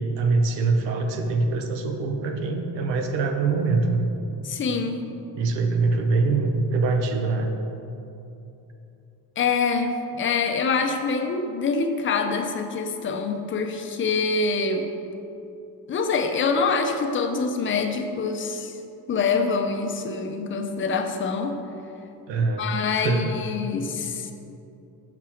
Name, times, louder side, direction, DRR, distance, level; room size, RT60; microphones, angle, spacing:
voice 1, 0.0-4.1 5.3-7.5 22.3-23.3, right 3 dB, 90° right, 5 dB, 0.8 m, -24 dB
voice 2, 4.4-5.0 9.4-14.9 15.9-18.8 19.1-21.6 22.3-24.3, left 4 dB, 30° left, 6 dB, 0.5 m, -25 dB
6.3 x 5.9 x 4.4 m, 2.8 s
cardioid pair, 140°, 41 cm